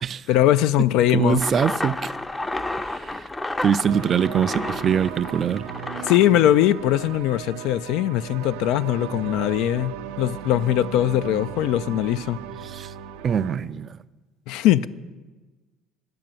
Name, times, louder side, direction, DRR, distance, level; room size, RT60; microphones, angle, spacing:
voice 1, 0.3-1.4 6.0-12.4 14.5-14.9, left 12 dB, 70° left, 0.3 m, -21 dB
voice 2, 1.1-2.1 2.8-3.2 3.6-5.6 12.6-12.9 13.2-13.9, right 7 dB, 45° right, 0.4 m, -23 dB
sound 1, 1.4-7.2, left 2 dB, 15° left, 0.5 m, -31 dB
sound 2, 3.9-13.6, right 10 dB, 85° right, 0.6 m, -36 dB
10.5 x 6.8 x 7.4 m
hypercardioid pair, 70°, 0 cm